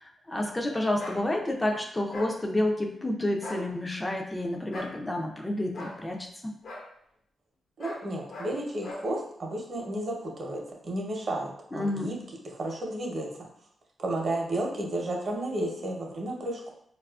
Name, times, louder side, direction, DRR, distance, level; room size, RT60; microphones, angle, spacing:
voice 1, 0.0-6.5 11.7-12.2, left 1 dB, 15° left, 1 dB, 0.3 m, -30 dB
sound 1, 1.0-1.2 2.1-2.3 3.3-3.6 4.7-5.0 5.7-6.0 6.6-6.8 7.8-8.0 8.3-8.5 8.8-9.0, left 1 dB, 75° left, 0.8 m, -39 dB
voice 2, 7.8-12.2 12.4-13.3 14.0-16.7, right 1 dB, 50° right, 0 dB, 0.7 m, -32 dB
4.0 x 2.3 x 2.3 m, 0.68 s
cardioid pair, 110°, 0 cm